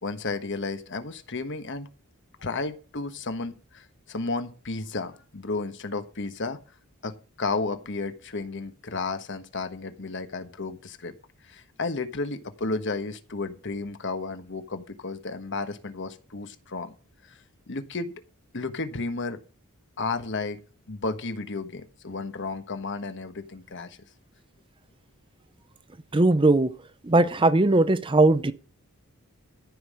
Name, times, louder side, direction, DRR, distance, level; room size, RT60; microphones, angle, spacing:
voice 1, 0.0-1.9 2.4-6.6 7.0-11.2 11.5-16.9 17.3-17.4 17.7-18.1 18.5-19.4 20.0-20.6 20.9-24.0, left 3 dB, 55° left, 1.3 m, -33 dB
voice 2, 26.1-26.7 27.0-28.5, right 2 dB, 25° right, 0.6 m, -19 dB
14.0 x 5.5 x 7.5 m
head